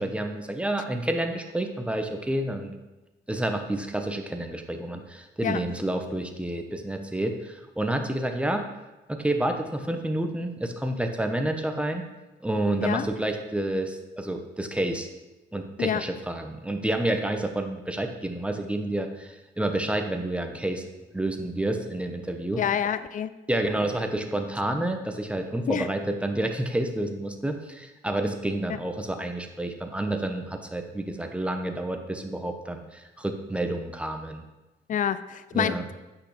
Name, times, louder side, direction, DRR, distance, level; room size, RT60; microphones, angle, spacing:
voice 1, 0.0-2.7 3.3-8.7 9.1-12.0 12.4-15.1 15.5-20.8 21.1-22.6 23.5-34.4 35.5-35.8, right 1 dB, 5° right, 5 dB, 1.0 m, -29 dB
voice 2, 22.6-23.3 25.7-25.9 34.9-35.8, left 8 dB, 40° left, 14 dB, 0.5 m, -27 dB
8.6 x 5.9 x 5.0 m, 1.1 s
cardioid pair, 90°, 20 cm